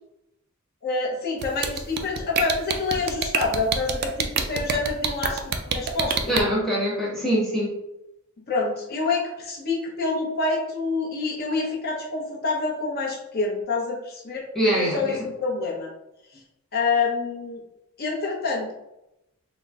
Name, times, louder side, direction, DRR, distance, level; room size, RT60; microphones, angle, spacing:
voice 1, 0.8-5.4 5.7-6.4 8.5-14.4 14.8-15.9 16.7-17.6 18.0-18.7, left 3 dB, 45° left, -2 dB, 0.7 m, -27 dB
sound 1, 1.4-6.4, right 6 dB, 50° right, 0.3 m, -25 dB
voice 2, 6.3-7.8 14.5-15.3, equal, ahead, -5 dB, 0.8 m, -24 dB
3.8 x 2.0 x 2.4 m, 0.89 s
head